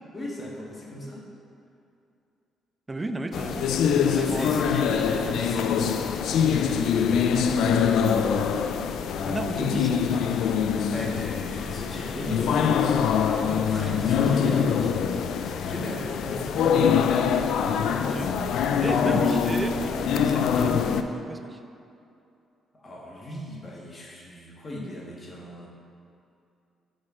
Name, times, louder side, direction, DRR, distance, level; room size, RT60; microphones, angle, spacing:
voice 1, 0.1-1.2 4.1-6.8 7.6-8.1 10.9-16.6 18.4-18.5 19.0-19.4 22.7-25.7, left 1 dB, 30° left, -2 dB, 1.5 m, -37 dB
voice 2, 2.9-4.5 9.2-10.4 18.0-18.4 18.8-21.6, right 2 dB, 20° right, 7 dB, 0.5 m, -33 dB
sound 1, 3.3-21.0, left 7 dB, 75° left, 0.3 m, -24 dB
6.3 x 4.3 x 6.1 m, 2.6 s
cardioid pair, 90°, 0 cm